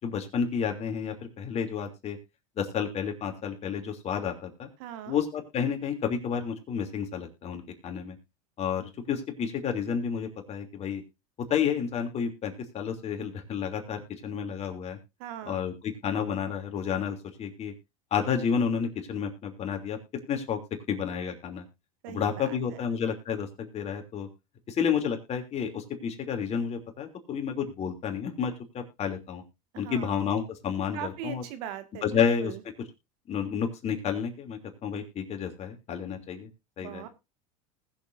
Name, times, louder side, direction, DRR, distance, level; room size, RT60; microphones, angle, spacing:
voice 1, 0.0-2.2 2.6-4.7 5.1-8.1 8.6-11.0 11.5-15.0 15.4-17.7 18.1-20.0 20.3-20.6 20.9-21.6 22.1-24.3 24.7-29.4 29.7-31.4 32.0-32.5 33.3-36.5 36.8-37.1, left 7 dB, 35° left, 4 dB, 3.2 m, -30 dB
voice 2, 4.8-5.2 15.2-15.7 22.0-22.6 29.7-30.2 30.9-32.6 36.8-37.1, right 10 dB, 65° right, 10 dB, 2.0 m, -40 dB
20.0 x 7.3 x 2.7 m, 0.26 s
supercardioid pair, 120°, 19 cm